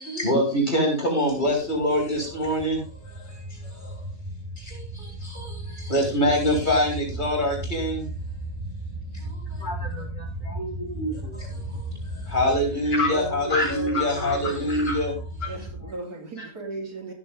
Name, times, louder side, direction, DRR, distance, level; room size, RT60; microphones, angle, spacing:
voice 1, 0.1-2.8 5.9-8.0 12.3-15.1, left 1 dB, 30° left, 5.9 m, -23 dB
sound 1, 1.4-15.9, right 1 dB, 15° right, 2.7 m, -36 dB
voice 2, 9.6-11.3 13.0-13.1 13.5-14.4 14.8-14.9, left 2 dB, 75° left, 4.8 m, -30 dB
voice 3, 13.1-14.7 15.5-17.1, right 2 dB, 85° right, 3.6 m, -35 dB
17.0 x 7.3 x 3.8 m
omnidirectional pair, 1.6 m